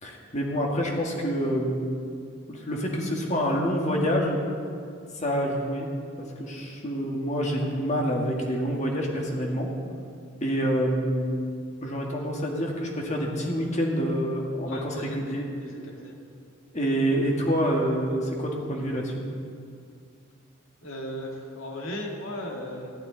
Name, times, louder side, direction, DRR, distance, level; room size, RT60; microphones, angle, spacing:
voice 1, 0.0-1.9 2.5-4.4 5.1-5.9 6.2-9.7 10.4-11.4 11.8-15.5 16.7-19.2, equal, 35° left, -1 dB, 1.7 m, -27 dB
voice 2, 14.7-16.2 20.8-22.9, equal, 85° left, 0 dB, 1.9 m, -37 dB
14.0 x 11.5 x 3.9 m, 2.3 s
head